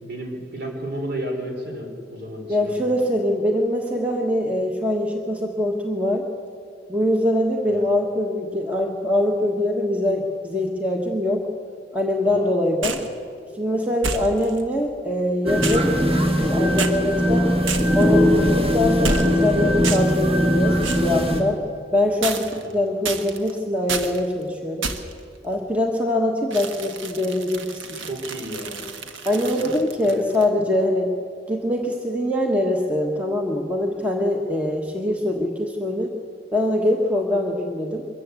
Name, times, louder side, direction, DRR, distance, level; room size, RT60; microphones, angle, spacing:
voice 1, 0.0-2.9 7.6-7.8 12.2-12.6 22.5-22.8 28.0-28.8 29.3-29.8 30.0-30.2, right 1 dB, 55° right, 2 dB, 3.8 m, -33 dB
voice 2, 2.5-6.3 6.9-11.5 11.9-13.0 13.5-16.0 16.3-17.5 17.9-21.6 21.9-24.9 25.4-28.0 29.2-31.2 31.5-36.1 36.5-38.1, left 1 dB, 5° right, 1 dB, 1.2 m, -23 dB
sound 1, 12.8-13.1 14.0-14.6 15.6-16.5 16.8-17.0 17.7-18.1 19.0-19.5 19.8-20.2 20.8-21.1 22.2-22.7 23.0-23.5 23.9-24.2 24.8-25.2 26.5-30.5, right 4 dB, 90° right, 1.4 m, -30 dB
sound 2, 15.5-21.4, equal, 30° right, 2.1 m, -20 dB
23.5 x 14.5 x 8.2 m, 2.3 s
head